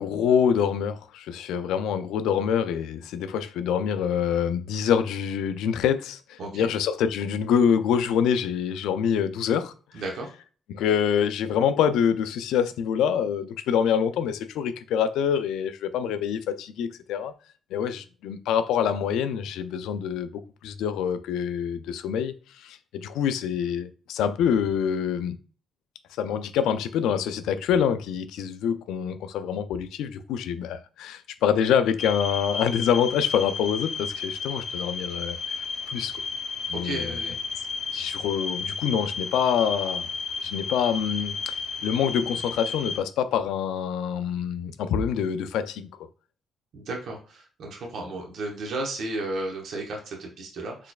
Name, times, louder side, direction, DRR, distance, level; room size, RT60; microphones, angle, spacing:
voice 1, 0.0-9.7 10.7-17.3 17.7-25.4 26.2-36.2 36.7-37.2 37.9-40.1 40.4-45.9, left 8 dB, 90° left, 0.3 m, -26 dB
voice 2, 9.9-10.3 36.7-37.4 46.7-50.9, right 2 dB, 70° right, 1.0 m, -34 dB
sound 1, 32.0-43.0, left 5 dB, 55° left, 0.6 m, -33 dB
4.1 x 3.2 x 2.3 m
cardioid pair, 90°, 0 cm